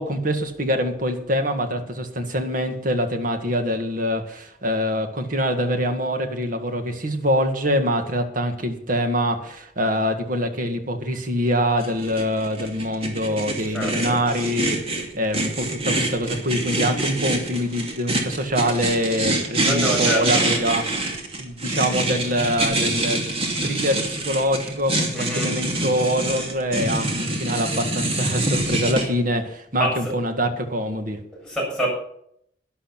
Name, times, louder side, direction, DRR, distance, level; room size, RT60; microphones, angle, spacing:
voice 1, 0.0-20.8 21.1-23.2 23.6-31.2, equal, 50° right, 6 dB, 1.9 m, -24 dB
sound 1, 11.8-29.1, right 2 dB, 35° right, 2.6 m, -25 dB
voice 2, 13.7-14.2 19.6-20.5 25.1-25.5 29.8-30.2 31.3-31.9, equal, ahead, -5 dB, 7.5 m, -26 dB
12.0 x 11.0 x 5.9 m, 0.70 s
head